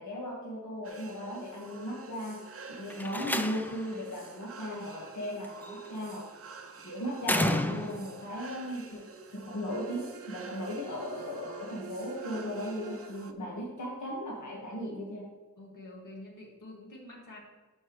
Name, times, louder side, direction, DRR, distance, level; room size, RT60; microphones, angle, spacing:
voice 1, 0.0-2.4 2.7-6.2 6.8-9.0 9.3-15.2, equal, 65° left, -4 dB, 1.6 m, -37 dB
sound 1, 0.8-13.3, right 4 dB, 45° right, 0.6 m, -49 dB
Slam, 2.9-3.9 5.4-5.9 7.2-8.2, left 1 dB, 5° left, 0.4 m, -31 dB
Bowed string instrument, 9.7-13.2, right 7 dB, 80° right, 0.7 m, -46 dB
voice 2, 15.6-17.4, left 1 dB, 80° left, -2 dB, 2.0 m, -47 dB
11.5 x 5.5 x 3.1 m, 1.2 s
wide cardioid pair, 100°, 31 cm